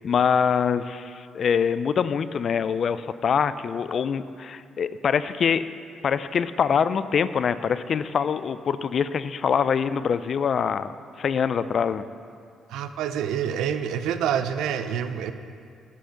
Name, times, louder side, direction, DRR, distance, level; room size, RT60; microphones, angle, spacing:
voice 1, 0.0-5.6 6.0-10.9 11.2-12.0, left 7 dB, 55° left, 14 dB, 0.4 m, -24 dB
voice 2, 12.7-15.3, right 8 dB, 85° right, 10 dB, 0.5 m, -27 dB
10.0 x 5.6 x 6.4 m, 2.3 s
cardioid pair, 90°, 0 cm